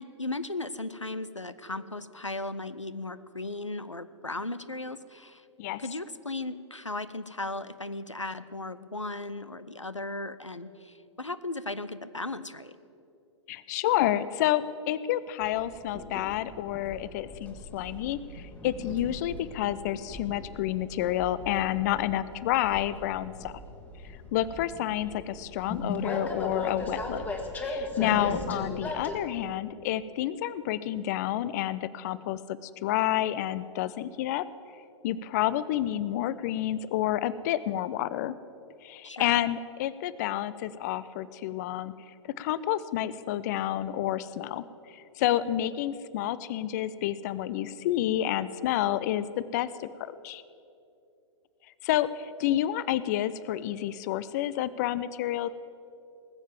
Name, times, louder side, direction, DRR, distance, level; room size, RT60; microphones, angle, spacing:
voice 1, 0.0-5.5 5.8-12.8 28.1-28.5 39.0-39.4, left 2 dB, 90° left, 14 dB, 0.6 m, -36 dB
voice 2, 13.5-23.5 24.3-27.2 27.6-34.4 35.0-38.3 38.8-41.9 42.4-50.4 51.8-55.5, left 13 dB, 35° left, 16 dB, 0.4 m, -29 dB
Train, 15.4-29.2, left 2 dB, 10° left, 1.4 m, -38 dB
20.0 x 7.3 x 7.3 m, 2.7 s
figure-of-eight pair, 110°, 15 cm